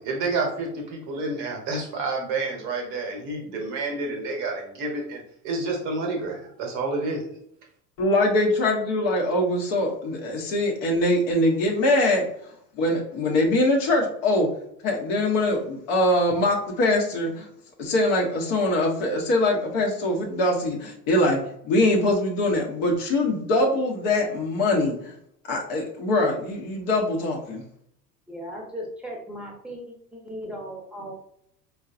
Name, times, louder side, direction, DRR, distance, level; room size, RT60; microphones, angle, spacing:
voice 1, 0.0-7.2, right 3 dB, 40° right, 2 dB, 1.0 m, -29 dB
voice 2, 8.0-12.2 12.8-14.5 14.8-17.5 17.8-21.4 21.6-25.1 25.5-27.6, left 1 dB, 40° left, 0 dB, 1.0 m, -23 dB
voice 3, 28.3-31.1, equal, ahead, -2 dB, 1.0 m, -37 dB
4.5 x 2.3 x 2.5 m, 0.71 s
figure-of-eight pair, 75°, 50 cm